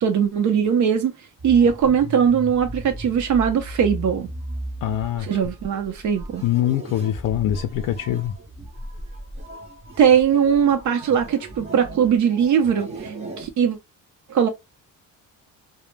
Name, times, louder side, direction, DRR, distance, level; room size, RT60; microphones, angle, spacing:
voice 1, 0.0-1.1 1.4-4.3 5.2-6.4 10.0-13.8 14.3-14.5, right 7 dB, 60° right, 0.7 m, -20 dB
sound 1, 1.4-13.5, right 1 dB, 20° right, 0.6 m, -36 dB
voice 2, 4.8-5.3 6.4-8.3, left 11 dB, 70° left, 0.5 m, -23 dB
2.1 x 2.1 x 3.1 m
cardioid pair, 130°, 33 cm